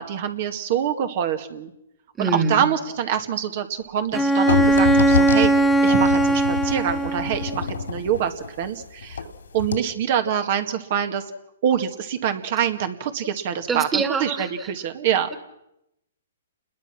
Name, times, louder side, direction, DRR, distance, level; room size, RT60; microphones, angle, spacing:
voice 1, 0.0-1.7 2.2-5.5 5.8-9.3 9.5-11.3 11.6-15.3, right 9 dB, 50° right, 8 dB, 1.9 m, -25 dB
voice 2, 2.2-2.7 13.7-14.7, right 5 dB, 15° right, 7 dB, 2.2 m, -24 dB
Bowed string instrument, 4.1-7.6, right 2 dB, 5° left, 1.4 m, -19 dB
sound 1, 4.5-9.3 9.6-9.8, left 6 dB, 85° left, 3.0 m, -27 dB
29.0 x 21.0 x 6.1 m, 0.83 s
hypercardioid pair, 140°, 0 cm